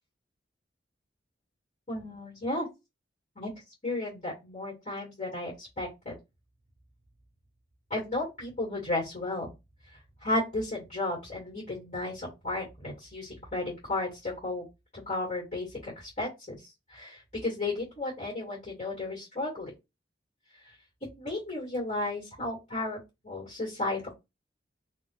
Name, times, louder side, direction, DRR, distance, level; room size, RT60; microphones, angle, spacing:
voice 1, 1.9-2.7 3.4-3.5 3.8-6.1 7.9-9.5 10.2-14.6 15.1-19.7 20.6-20.7 21.2-23.0 23.2-24.0, left 2 dB, 40° left, -5 dB, 2.5 m, -34 dB
4.1 x 3.1 x 3.2 m, 0.24 s
head